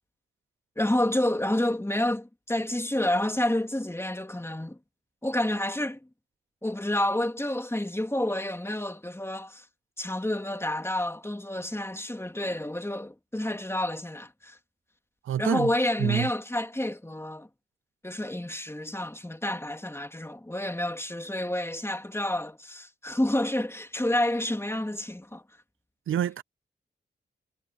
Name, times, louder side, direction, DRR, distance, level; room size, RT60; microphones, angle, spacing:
voice 1, 0.8-4.8 5.2-6.0 6.6-9.7 10.0-14.6 15.4-17.5 18.0-25.4, left 1 dB, 10° left, 2.5 m, -29 dB
voice 2, 15.2-15.7 16.0-16.3 26.1-26.4, right 11 dB, 90° right, 0.6 m, -27 dB
cardioid pair, 45°, 20 cm